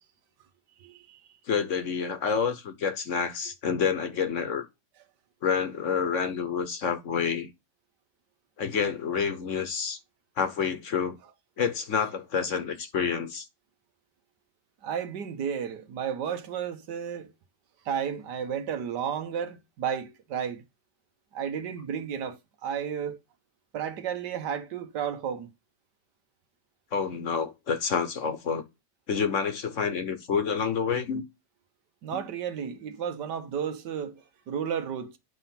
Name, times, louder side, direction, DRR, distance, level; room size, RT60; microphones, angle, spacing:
voice 1, 0.8-1.2 14.8-17.3 17.8-20.6 21.3-23.2 23.7-25.5 32.0-35.2, right 8 dB, 85° right, 1.6 m, -33 dB
voice 2, 1.5-4.7 5.4-7.5 8.6-10.0 10.4-11.2 11.6-13.5 26.9-28.7 29.1-31.2 32.1-32.3, left 6 dB, 55° left, 1.2 m, -28 dB
9.0 x 3.7 x 5.7 m
omnidirectional pair, 1.8 m